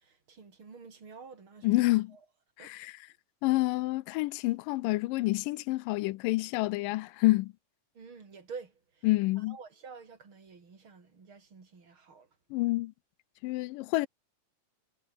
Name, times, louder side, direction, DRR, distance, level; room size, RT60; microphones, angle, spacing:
voice 1, 0.0-1.7 2.1-2.2 2.6-2.7 7.9-9.1 9.4-12.3, right 5 dB, 40° right, 4.7 m, -49 dB
voice 2, 1.6-2.2 2.6-3.0 3.4-7.5 9.0-9.6 12.5-12.9 13.4-14.1, left 20 dB, 90° left, 2.3 m, -28 dB
omnidirectional pair, 3.8 m